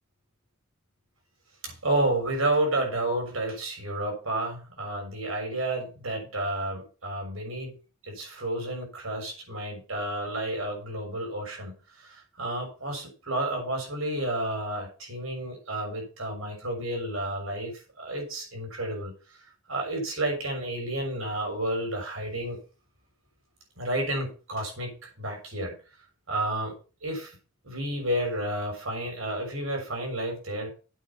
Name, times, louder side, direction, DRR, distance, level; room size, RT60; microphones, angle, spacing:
voice 1, 1.6-7.7 8.0-19.4 19.7-22.6 23.7-25.7 26.3-27.4 27.6-30.7, right 1 dB, 75° right, 1 dB, 6.4 m, -31 dB
8.7 x 8.7 x 5.8 m, 0.35 s
head